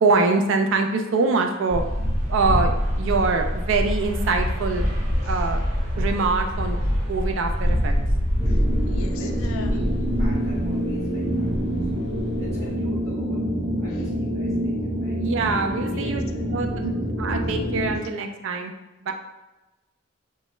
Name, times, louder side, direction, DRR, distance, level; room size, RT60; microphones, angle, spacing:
voice 1, 0.0-1.8 2.3-4.8 5.2-5.7 6.0-6.8 7.1-7.9 15.2-16.2 16.5-18.7 19.0-19.1, right 4 dB, 70° right, 5 dB, 0.3 m, -24 dB
sound 1, 1.7-11.1 11.4-12.7, equal, 40° right, 1.1 m, -25 dB
voice 2, 8.4-9.8 13.9-14.1 15.8-16.5, left 4 dB, 85° left, 6 dB, 0.3 m, -40 dB
sound 2, 8.4-18.0, equal, 15° right, 0.6 m, -27 dB
voice 3, 9.1-11.5 12.4-13.4 13.8-14.7 15.0-15.2, equal, 15° left, -6 dB, 0.9 m, -43 dB
3.0 x 2.2 x 3.0 m, 1.0 s
head